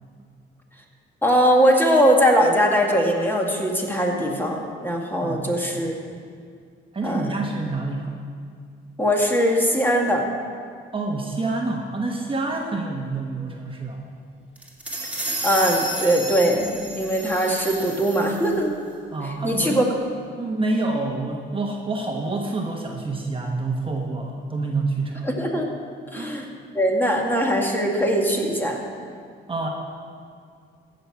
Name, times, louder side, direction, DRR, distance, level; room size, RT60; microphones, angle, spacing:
voice 1, 1.2-5.9 7.0-7.2 9.0-10.2 15.4-18.7 19.4-19.9 25.2-25.7 26.1-26.5 26.7-28.8, equal, 10° left, 0 dB, 1.9 m, -21 dB
voice 2, 5.2-5.8 6.9-8.1 10.9-14.0 19.1-19.9 20.4-25.3 26.1-26.3 29.5-29.7, right 3 dB, 25° right, 0 dB, 1.2 m, -27 dB
sound 1, 14.6-18.6, right 1 dB, 5° right, 2.2 m, -31 dB
15.5 x 6.5 x 5.8 m, 2.2 s
cardioid pair, 90°, 20 cm